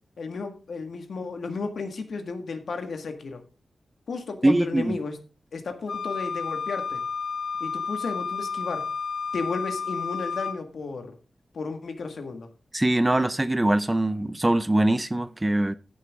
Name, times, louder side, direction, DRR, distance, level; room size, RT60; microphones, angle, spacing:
voice 1, 0.2-3.4 4.1-5.2 5.5-7.0 7.6-8.9 9.3-11.2 11.5-12.5, left 4 dB, 70° left, 1.9 m, -33 dB
voice 2, 4.4-5.0 12.7-15.7, right 1 dB, 15° right, 0.4 m, -22 dB
Wind instrument woodwind instrument, 5.9-10.6, left 5 dB, 85° left, 1.4 m, -31 dB
14.5 x 7.0 x 3.7 m
wide cardioid pair, 145°, 0 cm